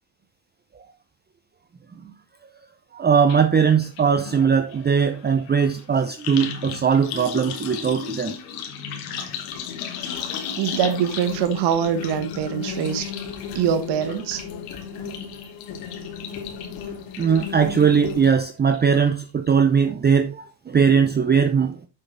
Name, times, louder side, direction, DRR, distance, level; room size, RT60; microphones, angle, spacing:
voice 1, 2.9-8.3 17.2-21.7, right 6 dB, 20° right, 0.7 m, -20 dB
sound 1, 3.3-3.4 3.7-18.3 18.7-19.2 19.5-19.6, left 7 dB, 85° left, 2.0 m, -36 dB
sound 2, 9.2-18.4, left 6 dB, 70° left, 2.5 m, -36 dB
voice 2, 10.6-13.1 13.5-14.4, right 8 dB, 55° right, 1.2 m, -23 dB
7.0 x 6.9 x 4.0 m
supercardioid pair, 90°, 49 cm